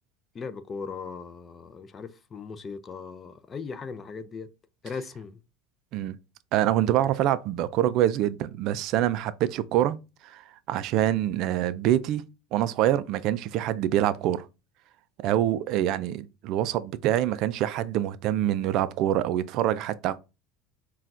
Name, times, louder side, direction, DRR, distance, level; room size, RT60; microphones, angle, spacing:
voice 1, 0.3-4.5 4.8-5.4, left 5 dB, 25° left, 0.4 m, -38 dB
voice 2, 6.5-10.0 10.2-12.2 12.5-14.5 15.2-20.2, right 12 dB, 55° right, 0.3 m, -25 dB
5.6 x 2.3 x 2.5 m
supercardioid pair, 125°, 0 cm